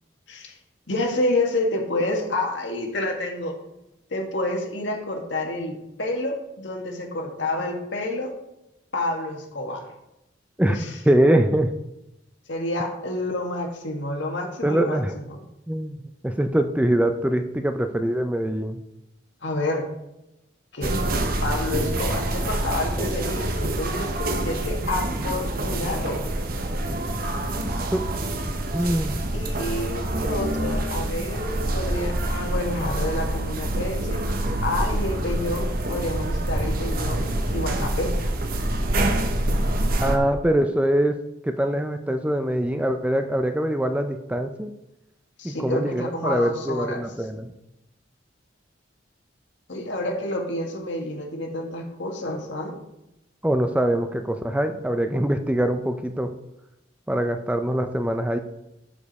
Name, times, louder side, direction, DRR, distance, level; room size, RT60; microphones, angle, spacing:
voice 1, 0.9-3.6 4.1-8.3 8.9-9.9 10.7-11.0 12.5-15.0 19.4-19.9 20.7-21.0 21.4-26.2 29.3-34.2 34.6-37.2 37.5-38.1 45.4-47.0 49.7-52.7, left 1 dB, 75° left, 1 dB, 1.7 m, -29 dB
voice 2, 11.1-11.7 14.6-15.1 15.7-18.8 27.9-28.0 28.7-29.2 40.0-41.2 41.4-44.7 45.4-47.5 53.4-56.3 57.1-58.4, right 1 dB, 5° right, 7 dB, 0.4 m, -23 dB
sound 1, 20.8-40.2, right 1 dB, 50° right, 0.9 m, -26 dB
11.5 x 5.1 x 4.1 m, 0.91 s
head